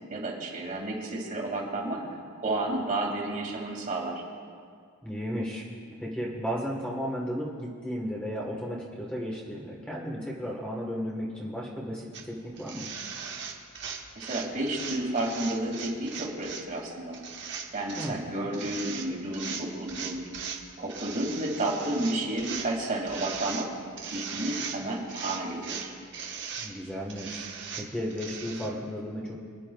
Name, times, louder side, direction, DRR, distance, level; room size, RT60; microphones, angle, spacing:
voice 1, 0.1-2.0 2.4-4.2 14.2-20.2 20.8-23.7 24.1-25.9, right 1 dB, 40° right, -1 dB, 2.2 m, -31 dB
voice 2, 5.0-5.6 6.0-12.9 17.9-18.3 26.6-27.4 27.8-29.3, equal, 5° left, -4 dB, 1.3 m, -34 dB
sound 1, 12.1-12.2 12.6-16.6 17.1-18.1 18.5-19.1 19.3-20.6 20.9-22.7 23.1-23.7 24.0-24.8 25.1-26.7 27.1-28.7, right 6 dB, 55° right, 1.2 m, -38 dB
27.5 x 9.8 x 2.3 m, 2.2 s
head